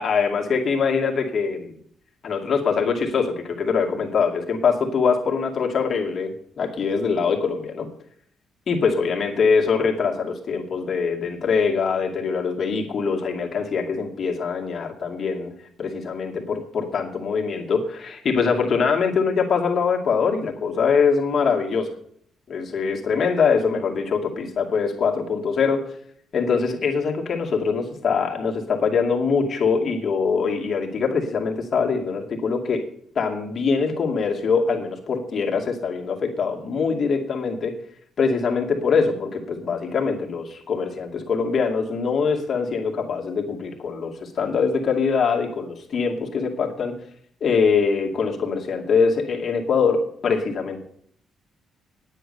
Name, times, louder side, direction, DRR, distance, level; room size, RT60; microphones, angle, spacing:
voice 1, 0.0-1.7 2.2-7.9 8.7-15.5 15.8-21.9 22.5-25.8 26.3-32.8 33.1-37.8 38.2-46.9 47.4-50.8, left 5 dB, 50° left, 1 dB, 2.3 m, -23 dB
9.8 x 9.0 x 6.6 m, 0.64 s
cardioid pair, 90°, 0 cm